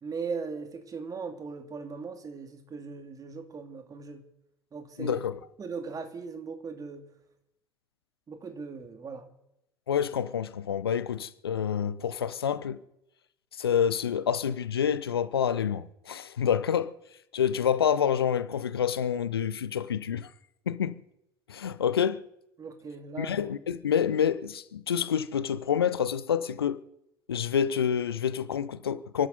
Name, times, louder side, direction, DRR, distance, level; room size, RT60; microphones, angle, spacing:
voice 1, 0.0-4.3 4.7-5.2 5.6-7.1 8.3-9.3 22.6-23.4, right 5 dB, 30° right, 2.6 m, -38 dB
voice 2, 5.0-5.4 9.9-12.8 13.6-16.9 17.3-20.3 20.7-21.0 21.5-22.2 23.2-26.8 27.3-29.3, left 8 dB, 75° left, 0.7 m, -28 dB
29.5 x 12.0 x 4.1 m
figure-of-eight pair, 70°, 13 cm